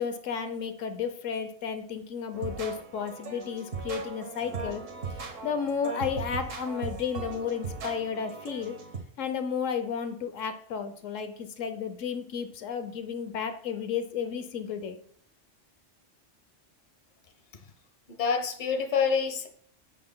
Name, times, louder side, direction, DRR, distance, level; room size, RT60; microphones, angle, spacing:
voice 1, 0.0-4.8 5.4-8.8 9.2-15.0, left 7 dB, 80° left, 1.1 m, -33 dB
sound 1, 2.3-9.0, right 4 dB, 85° right, 1.6 m, -38 dB
voice 2, 18.1-19.5, left 6 dB, 45° left, 1.0 m, -27 dB
14.5 x 5.7 x 2.2 m
omnidirectional pair, 1.3 m